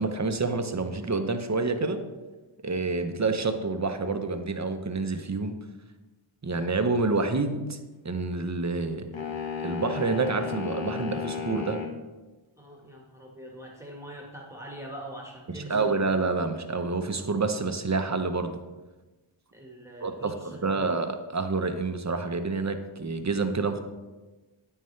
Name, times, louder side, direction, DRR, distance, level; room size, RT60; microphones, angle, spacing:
voice 1, 0.0-2.0 2.6-5.6 6.4-7.8 8.0-9.1 9.6-11.8 15.5-18.6 20.0-20.3 20.6-23.8, right 3 dB, 35° right, 7 dB, 0.9 m, -28 dB
sound 1, 9.1-12.0, left 6 dB, 60° left, 1.6 m, -33 dB
voice 2, 12.6-16.1 19.5-20.8, right 1 dB, 5° right, -2 dB, 1.6 m, -43 dB
9.3 x 9.2 x 3.3 m, 1.2 s
wide cardioid pair, 65°, 50 cm